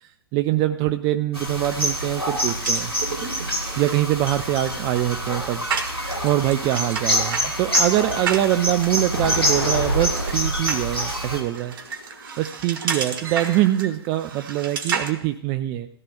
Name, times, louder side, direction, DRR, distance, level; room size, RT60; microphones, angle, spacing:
voice 1, 0.0-2.9 3.8-5.6 6.2-11.8 12.4-15.9, right 14 dB, 30° right, 10 dB, 0.4 m, -23 dB
sound 1, 1.3-11.4, equal, 85° left, 3.4 m, -26 dB
sound 2, 1.6-15.1, right 6 dB, 55° right, 1.2 m, -33 dB
Explosion, 9.1-10.8 11.3-12.2, left 1 dB, 70° left, 4.9 m, -31 dB
18.0 x 13.5 x 2.4 m, 0.66 s
figure-of-eight pair, 105°, 13 cm